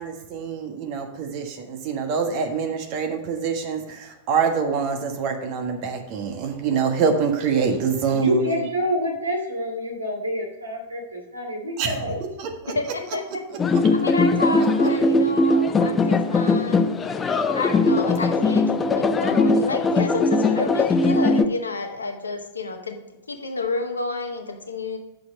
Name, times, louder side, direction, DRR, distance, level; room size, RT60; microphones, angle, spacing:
voice 1, 0.0-8.4 11.8-11.9 12.4-12.7, right 6 dB, 40° right, 4 dB, 1.4 m, -25 dB
voice 2, 8.0-12.2, equal, 80° right, 1 dB, 2.6 m, -27 dB
voice 3, 12.7-13.2 13.9-16.9 17.5-25.0, left 3 dB, 75° left, 3 dB, 1.4 m, -30 dB
sound 1, 13.6-21.4, left 3 dB, 15° left, 0.6 m, -20 dB
8.3 x 6.6 x 5.3 m, 1.0 s
figure-of-eight pair, 95°, 0 cm